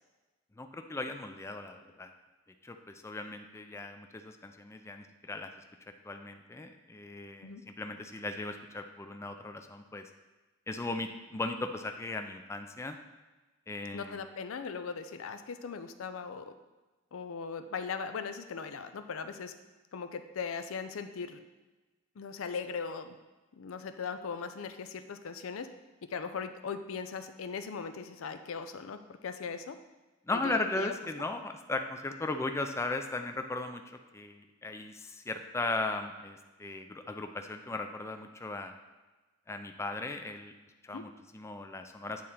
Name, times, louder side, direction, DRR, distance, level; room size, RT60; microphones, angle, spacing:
voice 1, 0.6-2.1 2.6-5.5 6.0-10.1 10.7-13.0 13.7-14.2 30.3-33.8 34.1-38.7 39.5-40.5 40.8-42.2, left 2 dB, 15° left, 6 dB, 0.3 m, -37 dB
voice 2, 13.9-16.5 17.1-19.5 19.9-21.4 22.2-23.2 23.6-25.7 26.1-29.8 30.4-30.9 40.9-41.0, left 5 dB, 90° left, 9 dB, 0.5 m, -39 dB
8.6 x 3.7 x 4.2 m, 1.2 s
head